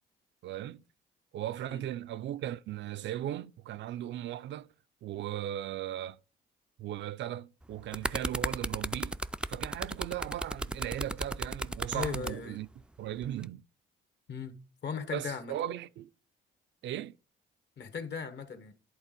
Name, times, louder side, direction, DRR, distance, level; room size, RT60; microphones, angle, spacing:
voice 1, 0.4-0.8 1.3-4.7 5.0-6.2 6.8-9.2 9.5-12.7 13.0-13.6 15.1-16.1 16.8-17.2, right 12 dB, 65° right, 0.4 m, -37 dB
sound 1, 7.6-12.3 13.2-13.4, right 1 dB, 5° right, 0.3 m, -34 dB
voice 2, 11.9-12.6 14.3-14.6 14.8-15.5 17.8-18.7, left 6 dB, 60° left, 1.4 m, -37 dB
11.0 x 3.7 x 5.2 m
cardioid pair, 90°, 20 cm